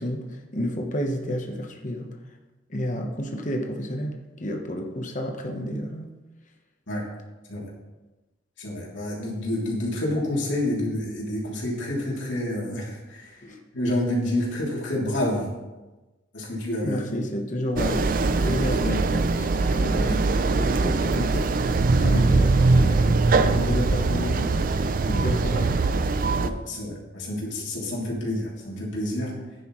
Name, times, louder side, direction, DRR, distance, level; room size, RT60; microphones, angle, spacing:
voice 1, 0.0-2.2 2.7-6.1 13.4-13.6 16.8-21.5 22.0-25.8, equal, 40° left, 2 dB, 1.1 m, -30 dB
voice 2, 8.6-13.4 13.7-15.5 16.3-17.0 18.4-19.0 20.0-20.1 22.0-22.1 26.4-29.4, left 1 dB, 75° left, -4 dB, 3.1 m, -29 dB
sound 1, 17.8-26.5, right 3 dB, 45° right, 0.5 m, -22 dB
11.5 x 10.0 x 3.2 m, 1.1 s
head